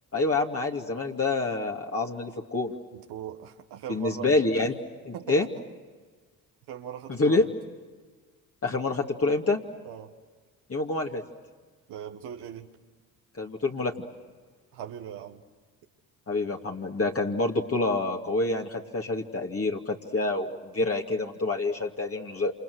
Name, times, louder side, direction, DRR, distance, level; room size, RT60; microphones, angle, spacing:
voice 1, 0.1-2.7 3.9-4.8 5.0-5.5 7.1-7.5 8.6-9.6 10.7-11.2 13.4-14.0 16.3-22.5, left 2 dB, 35° left, 0 dB, 2.7 m, -27 dB
voice 2, 2.9-4.4 5.1-5.3 6.7-7.5 9.8-10.1 11.9-12.7 14.7-15.4, right 10 dB, 80° right, 4 dB, 1.7 m, -39 dB
28.5 x 27.5 x 6.4 m, 1.4 s
supercardioid pair, 60°, 40 cm